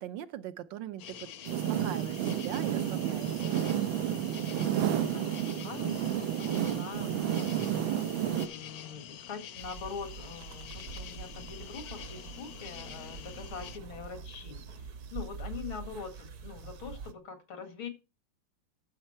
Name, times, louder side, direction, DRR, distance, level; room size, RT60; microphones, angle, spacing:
voice 1, 0.0-3.6, right 11 dB, 70° right, 1.4 m, -41 dB
sound 1, 1.0-13.8, left 9 dB, 60° left, 1.1 m, -47 dB
sound 2, 1.4-8.5, right 10 dB, 90° right, 1.7 m, -31 dB
voice 2, 4.5-17.9, left 6 dB, 90° left, 2.7 m, -44 dB
sound 3, 9.6-17.1, right 5 dB, 55° right, 1.3 m, -45 dB
13.0 x 6.6 x 4.4 m
omnidirectional pair, 2.2 m